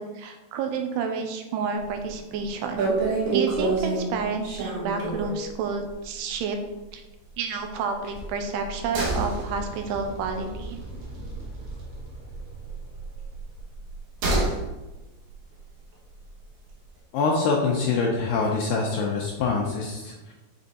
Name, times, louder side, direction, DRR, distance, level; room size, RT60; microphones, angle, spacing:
voice 1, 0.0-2.9 3.3-6.6 6.9-7.0 7.4-10.8, right 5 dB, 85° right, 5 dB, 2.7 m, -30 dB
sound 1, 1.9-2.2 2.4-2.5 2.8-5.5 5.9-6.0 6.3-6.4 8.0-12.0 12.2-14.7 15.0-15.1, right 3 dB, 70° right, 1.9 m, -28 dB
sound 2, 8.6-13.8, right 1 dB, 55° right, 2.0 m, -43 dB
voice 2, 17.1-20.3, left 4 dB, 80° left, -2 dB, 2.1 m, -25 dB
7.5 x 3.5 x 4.0 m, 1.1 s
omnidirectional pair, 4.9 m